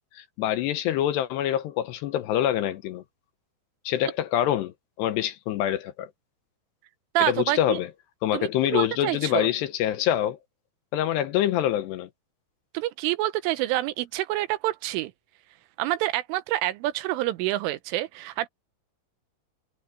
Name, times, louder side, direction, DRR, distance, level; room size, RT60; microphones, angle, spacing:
voice 1, 0.0-3.0 3.9-6.1 7.2-7.9 8.2-10.4 10.9-12.1, left 11 dB, 75° left, 2.8 m, -26 dB
voice 2, 7.2-7.8 8.3-9.5 12.8-15.1 15.8-18.5, right 16 dB, 90° right, 3.5 m, -27 dB
omnidirectional pair, 5.5 m